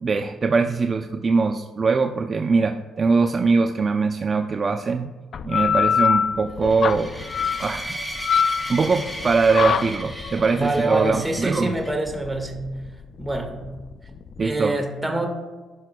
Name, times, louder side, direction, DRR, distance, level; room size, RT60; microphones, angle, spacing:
voice 1, 0.0-5.1 5.4-7.1 7.6-8.0 8.5-11.7 14.4-14.7, right 4 dB, 40° right, 5 dB, 0.5 m, -22 dB
sound 1, 5.3-14.5, left 7 dB, 55° left, 0.3 m, -25 dB
sound 2, 6.6-11.9, equal, 10° left, 2.6 m, -36 dB
voice 2, 10.5-12.6 13.2-13.6 14.1-14.2 14.4-15.3, right 1 dB, 10° right, 2 dB, 1.7 m, -25 dB
15.0 x 5.8 x 2.3 m, 1.3 s
cardioid pair, 90°, 0 cm